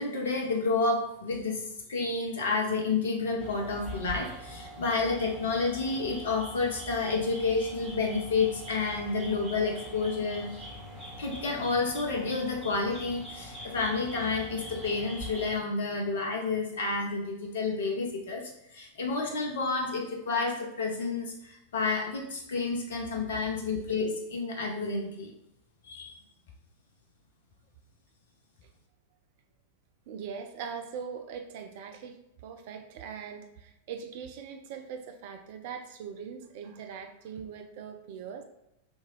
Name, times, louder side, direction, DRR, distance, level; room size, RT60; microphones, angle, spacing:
voice 1, 0.0-1.6 1.9-10.5 11.2-25.3 25.8-26.1, left 4 dB, 60° left, 1 dB, 0.6 m, -30 dB
sound 1, 3.4-15.6, equal, 15° right, 1.2 m, -43 dB
voice 2, 30.1-32.2 32.4-38.4, right 7 dB, 50° right, 6 dB, 0.4 m, -41 dB
3.6 x 2.8 x 3.0 m, 0.84 s
figure-of-eight pair, 90°, 0 cm